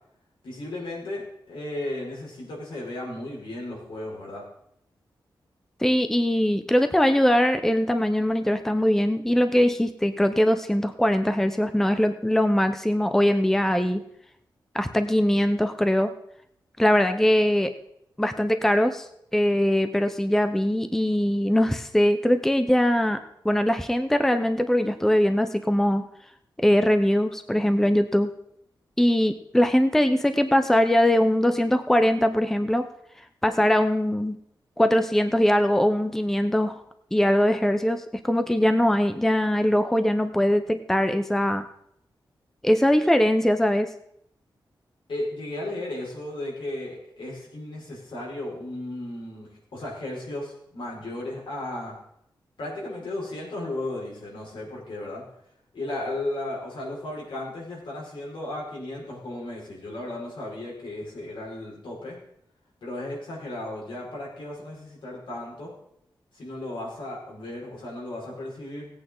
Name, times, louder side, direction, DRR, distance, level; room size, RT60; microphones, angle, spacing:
voice 1, 0.4-4.4 45.1-52.0 52.6-55.2 55.7-62.2 62.8-65.7 66.3-68.9, left 1 dB, 80° left, -4 dB, 4.9 m, -35 dB
voice 2, 5.8-14.0 14.7-16.1 16.8-17.7 18.2-19.1 19.3-26.0 26.6-28.3 29.0-32.9 33.4-34.4 34.8-36.8 37.1-41.6 42.6-43.9, equal, 5° left, 9 dB, 0.6 m, -21 dB
18.0 x 8.6 x 3.8 m, 0.72 s
wide cardioid pair, 150°, 8 cm